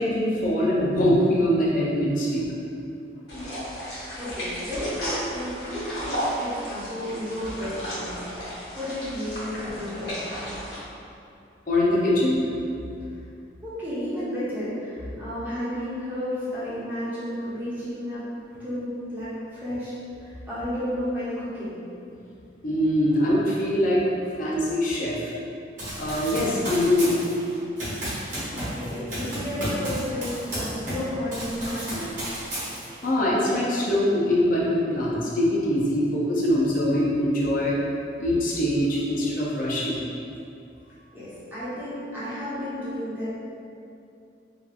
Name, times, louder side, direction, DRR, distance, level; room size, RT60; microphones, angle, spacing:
voice 1, 0.0-2.5 11.7-12.6 22.6-24.0 24.4-25.3 26.0-27.2 33.0-37.8 38.2-40.0, left 1 dB, 45° left, -5 dB, 0.4 m, -23 dB
sound 1, 3.3-10.8, equal, 65° left, 0.8 m, -34 dB
voice 2, 3.3-10.1 13.6-18.3 18.6-19.9 20.2-21.8 28.0-32.1 41.1-43.3, left 1 dB, 10° right, -12 dB, 0.6 m, -32 dB
Run, 25.8-31.1 31.3-33.1, equal, 45° right, 0.9 m, -32 dB
2.7 x 2.3 x 2.4 m, 2.6 s
head